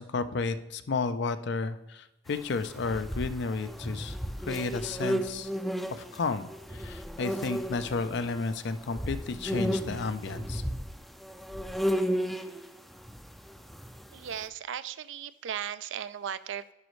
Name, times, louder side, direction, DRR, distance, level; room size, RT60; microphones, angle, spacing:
voice 1, 0.0-4.2 4.4-5.5 5.9-10.6, left 4 dB, 65° left, 11 dB, 0.5 m, -32 dB
sound 1, 2.7-8.4 8.9-14.2, equal, ahead, 0.4 m, -33 dB
voice 2, 14.1-16.7, right 8 dB, 75° right, 14 dB, 0.4 m, -37 dB
11.0 x 5.2 x 3.1 m, 0.99 s
head